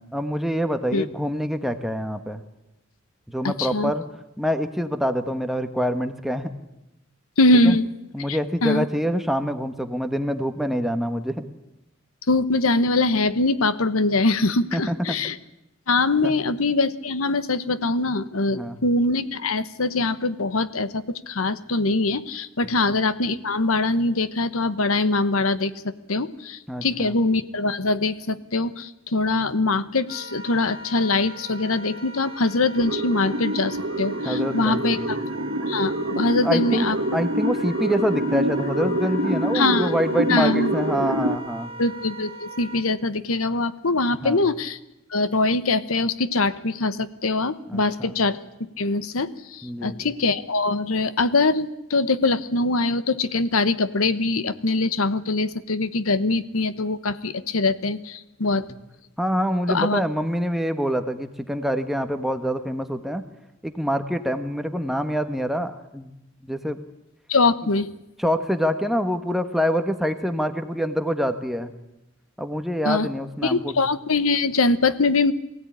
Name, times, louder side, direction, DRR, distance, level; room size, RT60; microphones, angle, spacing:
voice 1, 0.0-2.4 3.3-4.0 4.4-6.5 7.6-7.8 8.1-11.4 14.7-14.9 16.2-16.3 18.5-18.8 22.6-22.8 26.7-27.2 34.2-35.1 36.4-41.7 44.2-44.4 47.7-48.1 49.6-50.0 59.2-63.2 63.6-66.1 66.4-66.8 68.2-71.7 72.4-73.7, equal, ahead, 7 dB, 1.2 m, -26 dB
voice 2, 3.4-3.9 7.4-7.9 8.3-8.9 12.3-15.4 15.9-35.2 35.7-37.0 39.5-40.0 40.3-40.7 41.8-44.8 45.1-58.7 59.7-60.0 67.3-67.9 72.8-73.1 73.4-75.3, left 3 dB, 90° left, 14 dB, 1.1 m, -23 dB
Wind instrument woodwind instrument, 30.0-42.8, left 1 dB, 25° right, 2.4 m, -39 dB
sound 1, 32.8-41.4, right 1 dB, 80° right, 1.6 m, -26 dB
23.0 x 16.5 x 9.9 m, 0.91 s
head